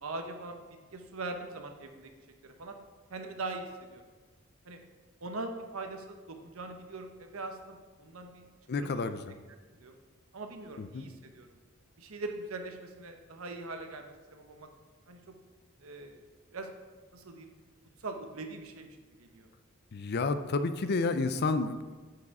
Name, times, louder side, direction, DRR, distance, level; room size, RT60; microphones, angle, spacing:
voice 1, 0.0-2.1 2.4-2.8 3.1-4.0 4.6-4.8 5.2-8.4 8.7-9.1 9.5-9.9 10.3-11.6 12.0-14.7 15.1-15.3 15.8-16.2 16.5-16.7 17.1-17.5 18.0-19.5, right 2 dB, 85° right, 5 dB, 0.9 m, -42 dB
voice 2, 8.7-9.2 10.8-11.0 19.9-22.0, left 3 dB, 50° left, 10 dB, 0.5 m, -30 dB
9.1 x 4.9 x 4.8 m, 1.3 s
head